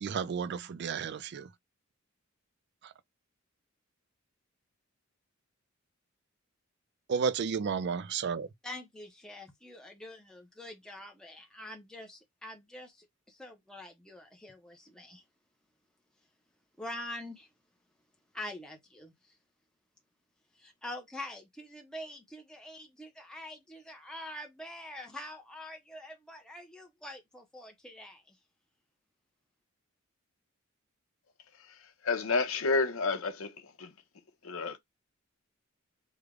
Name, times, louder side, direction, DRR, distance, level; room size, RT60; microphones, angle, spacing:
voice 1, 0.0-1.5 2.8-2.9 7.1-8.5, right 6 dB, 55° right, 0.4 m, -32 dB
voice 2, 8.6-15.2 16.8-17.5 18.3-19.3 20.6-28.4, left 1 dB, 5° left, 0.6 m, -45 dB
voice 3, 32.0-33.9 34.4-34.8, left 3 dB, 80° left, 0.7 m, -30 dB
3.3 x 2.1 x 3.6 m
head